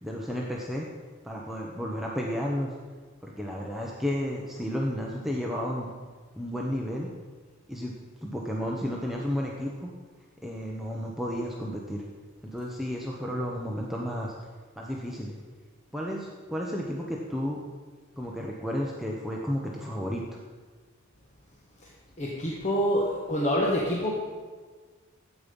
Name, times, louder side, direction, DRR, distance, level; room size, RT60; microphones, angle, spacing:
voice 1, 0.0-0.9 1.2-2.7 3.2-5.9 6.3-7.1 7.7-7.9 8.2-9.9 10.4-12.0 12.5-14.3 14.8-15.4 15.9-17.6 18.2-20.4, equal, ahead, -3 dB, 1.0 m, -32 dB
voice 2, 22.2-24.1, equal, 35° left, -3 dB, 1.4 m, -26 dB
12.5 x 8.8 x 5.4 m, 1.5 s
head